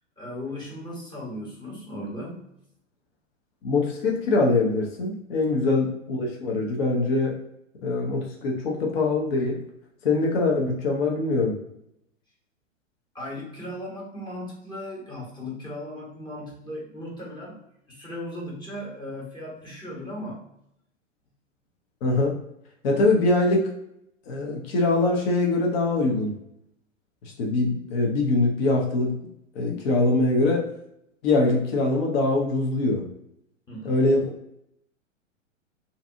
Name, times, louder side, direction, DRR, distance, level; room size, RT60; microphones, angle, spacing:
voice 1, 0.2-2.5 5.6-5.7 13.1-17.6 17.9-20.4 33.7-34.0, left 1 dB, 10° left, -4 dB, 0.9 m, -37 dB
voice 2, 3.6-7.4 7.8-9.6 10.0-11.6 22.0-22.4 22.8-23.7 24.3-26.3 27.2-29.1 29.5-30.6 31.2-33.1 33.8-34.3, left 2 dB, 50° left, 0 dB, 0.8 m, -23 dB
2.6 x 2.4 x 2.6 m, 0.76 s
figure-of-eight pair, 110°, 39 cm